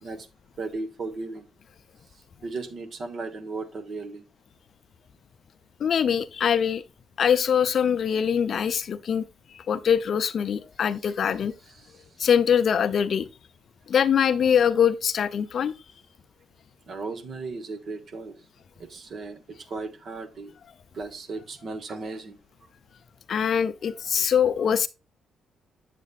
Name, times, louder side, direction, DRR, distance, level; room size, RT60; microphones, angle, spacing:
voice 1, 0.6-1.5 2.4-4.2 11.7-12.1 16.9-18.4 18.8-20.5 20.9-22.4, right 3 dB, 50° right, 1.1 m, -36 dB
voice 2, 5.8-6.8 7.2-9.3 9.5-11.5 12.2-13.3 13.9-15.7 23.3-24.9, left 8 dB, 55° left, 0.5 m, -23 dB
8.3 x 6.8 x 2.4 m
cardioid pair, 90°, 0 cm